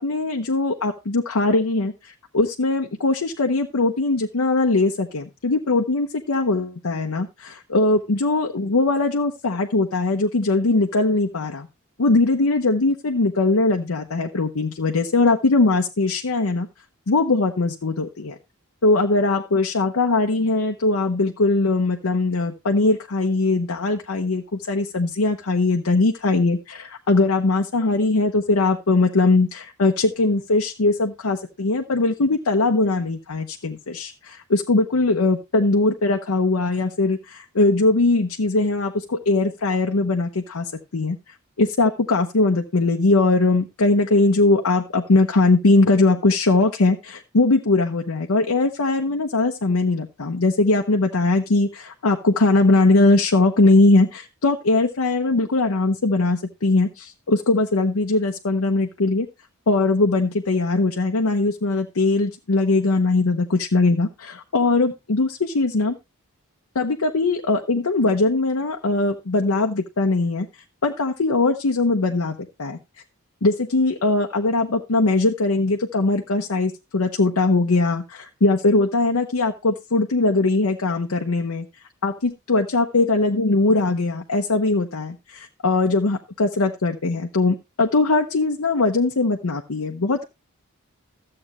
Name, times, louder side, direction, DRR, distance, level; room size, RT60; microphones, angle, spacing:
voice 1, 0.0-11.7 12.0-16.7 17.1-18.3 18.8-41.2 41.6-59.3 59.7-66.0 66.7-70.5 70.8-72.8 73.4-81.7 82.0-90.2, left 2 dB, 80° left, 2 dB, 0.8 m, -20 dB
13.5 x 7.7 x 3.0 m, 0.24 s
head